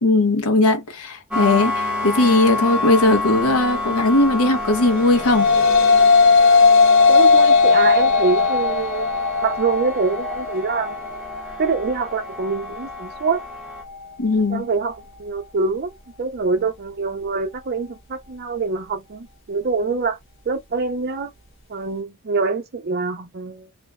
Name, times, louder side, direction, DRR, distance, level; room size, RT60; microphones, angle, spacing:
voice 1, 0.0-5.5 14.2-14.7, left 2 dB, 85° left, 0.8 m, -18 dB
sound 1, 1.3-13.8, left 2 dB, 5° right, 0.8 m, -29 dB
sound 2, 4.9-14.1, left 4 dB, 60° left, 1.0 m, -17 dB
voice 2, 7.1-9.1 9.4-11.0 11.6-13.4 14.5-15.9 16.2-20.2 20.5-21.3 21.7-23.7, right 4 dB, 45° right, 0.5 m, -24 dB
2.5 x 2.2 x 2.2 m
head